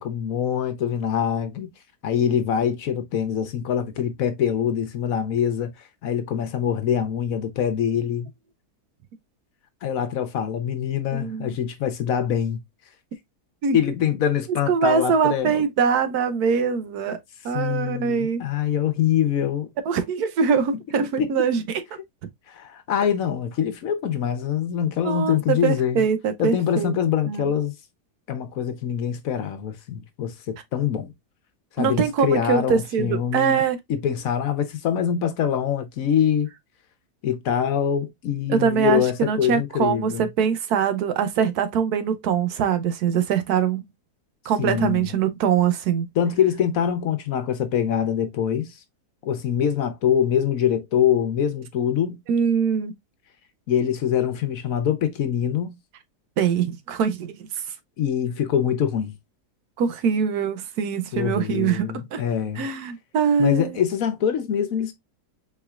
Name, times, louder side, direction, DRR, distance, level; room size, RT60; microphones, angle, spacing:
voice 1, 0.0-1.7 2.0-5.7 6.0-8.3 9.8-12.6 13.7-15.6 17.5-19.7 21.2-21.3 22.5-26.0 26.4-27.7 28.3-31.1 31.8-33.6 33.9-36.5 37.2-40.3 44.6-45.1 46.2-48.7 49.2-52.2 53.7-55.8 58.0-59.1 61.1-62.7 63.4-64.9, left 9 dB, 65° left, 1.1 m, -24 dB
voice 2, 11.1-11.5 13.6-13.8 14.7-17.2 17.4-18.4 19.9-21.8 25.0-26.9 27.3-27.5 31.8-33.8 38.5-43.9 44.5-46.1 52.3-52.9 56.4-57.5 59.8-62.2 62.6-63.8, right 6 dB, 75° right, 1.2 m, -23 dB
4.4 x 4.3 x 2.3 m
omnidirectional pair, 1.7 m